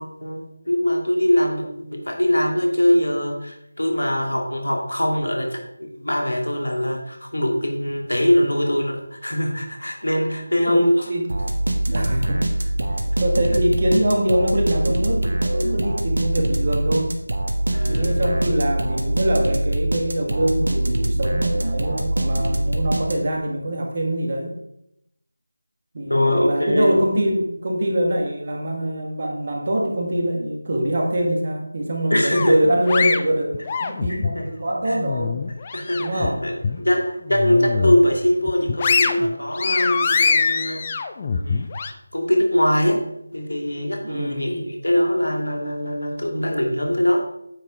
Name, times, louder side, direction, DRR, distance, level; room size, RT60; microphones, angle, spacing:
voice 1, 0.0-11.0 17.7-18.5 26.1-26.9 32.1-32.6 34.1-34.5 34.9-35.0 35.7-40.8 41.2-41.6 42.1-43.0 43.3-47.2, left 1 dB, 80° left, 2 dB, 2.2 m, -22 dB
sound 1, 11.3-23.5, right 1 dB, 60° right, 1.4 m, -23 dB
voice 2, 11.9-12.4 13.2-17.2 17.9-24.6 25.9-35.4 36.0-36.5 37.7-38.0 44.0-44.6, right 1 dB, 40° right, 1 dB, 2.0 m, -24 dB
sound 2, 32.3-34.4 34.8-36.3 36.6-36.8 37.3-38.0 38.4-41.9, left 5 dB, 25° left, 0.5 m, -23 dB
9.2 x 7.2 x 3.8 m, 0.79 s
figure-of-eight pair, 165°, 0 cm